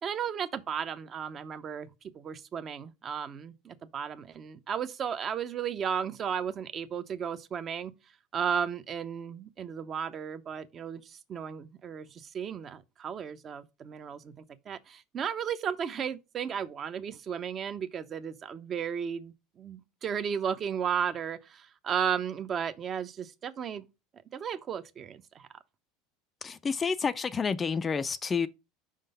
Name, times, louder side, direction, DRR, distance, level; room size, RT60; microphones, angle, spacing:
voice 1, 0.0-7.9 8.3-23.8 24.3-25.5, right 7 dB, 35° right, 0.7 m, -34 dB
voice 2, 26.4-28.5, left 5 dB, 25° left, 0.3 m, -29 dB
5.3 x 3.8 x 5.4 m
supercardioid pair, 100°, 0 cm